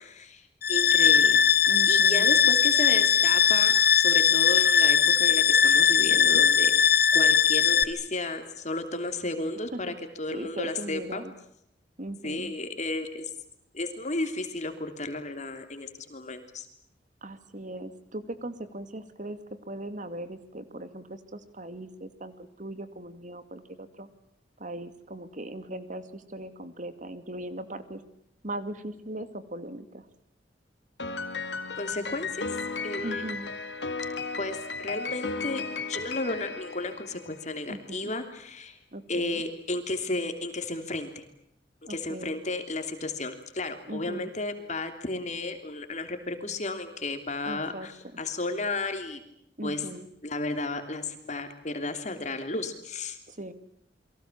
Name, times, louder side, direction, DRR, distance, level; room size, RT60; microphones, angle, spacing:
voice 1, 0.0-1.4 1.9-11.2 12.2-13.3 13.7-16.7 31.8-32.5 32.8-33.3 34.4-38.8 39.1-41.2 41.9-47.9 48.2-49.2 49.6-49.8 50.2-53.2, left 2 dB, 40° left, 7 dB, 3.1 m, -33 dB
sound 1, 0.6-7.8, left 7 dB, 60° left, 1.5 m, -20 dB
voice 2, 1.7-2.3 6.1-6.4 9.7-10.0 10.3-11.3 12.0-12.5 17.2-19.4 19.6-24.1 24.6-28.0 28.4-30.1 33.0-33.5 37.7-38.1 38.9-39.4 41.8-42.3 43.9-44.3 47.5-47.9 49.6-50.1 53.3-53.5, right 1 dB, 45° right, 11 dB, 2.4 m, -39 dB
Piano, 31.0-37.5, left 4 dB, 75° left, 2.5 m, -35 dB
30.0 x 23.0 x 7.5 m, 0.73 s
head